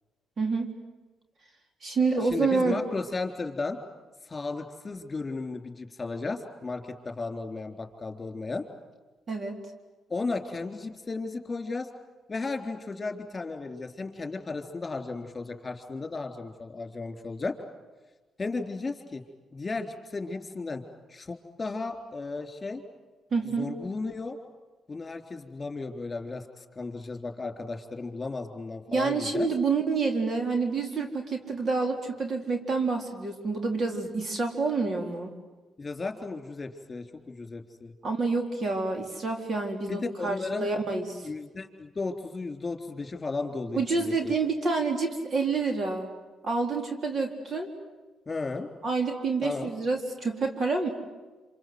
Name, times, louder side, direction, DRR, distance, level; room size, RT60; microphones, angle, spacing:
voice 1, 0.4-0.7 1.8-2.8 9.3-9.6 23.3-23.7 28.9-35.3 38.0-41.3 43.7-46.1 46.4-47.7 48.8-50.9, right 4 dB, 50° right, 4 dB, 3.9 m, -28 dB
voice 2, 2.2-3.8 4.3-8.7 10.1-11.9 12.3-17.6 18.4-19.2 19.5-20.8 21.1-22.8 23.4-24.4 24.9-29.5 35.8-37.9 39.9-40.7 41.2-44.3 48.3-48.7 49.4-49.7, left 3 dB, 30° left, 5 dB, 3.9 m, -34 dB
27.5 x 26.5 x 8.0 m, 1.2 s
cardioid pair, 80°, 0 cm